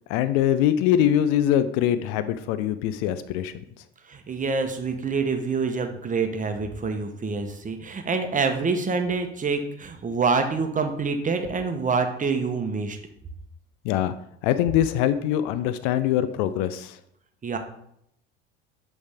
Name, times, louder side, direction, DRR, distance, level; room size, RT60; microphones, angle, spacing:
voice 1, 0.1-3.5 13.9-14.1 14.4-16.9, left 11 dB, 60° left, 13 dB, 0.5 m, -23 dB
voice 2, 4.1-13.0 17.4-17.6, right 4 dB, 25° right, 6 dB, 1.0 m, -26 dB
7.9 x 3.5 x 3.5 m, 0.72 s
hypercardioid pair, 70°, 32 cm